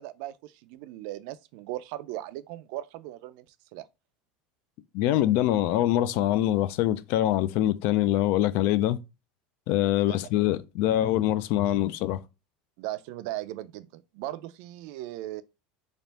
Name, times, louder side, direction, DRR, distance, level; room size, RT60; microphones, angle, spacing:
voice 1, 0.0-3.9 10.0-10.2 12.8-15.4, right 15 dB, 65° right, 0.4 m, -38 dB
voice 2, 4.9-9.0 9.7-12.2, left 13 dB, 60° left, 0.4 m, -24 dB
3.4 x 2.5 x 4.1 m
supercardioid pair, 150°, 4 cm